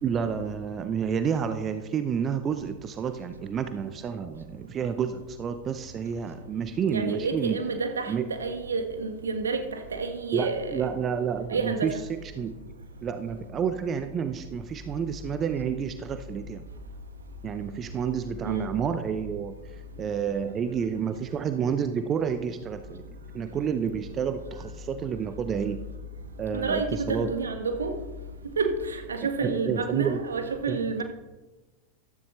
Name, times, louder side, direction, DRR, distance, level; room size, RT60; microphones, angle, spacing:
voice 1, 0.0-7.6 8.1-8.2 10.3-11.9 12.4-12.5 13.0-16.6 17.4-19.5 20.0-23.0 23.3-25.8 26.4-27.3 29.4-30.2 30.7-31.0, right 7 dB, 25° right, 0.7 m, -29 dB
voice 2, 6.9-10.9 11.5-11.9 18.4-18.7 26.5-28.0 28.6-31.0, right 4 dB, 70° right, 1.6 m, -29 dB
14.5 x 13.0 x 3.2 m
figure-of-eight pair, 90°, 0 cm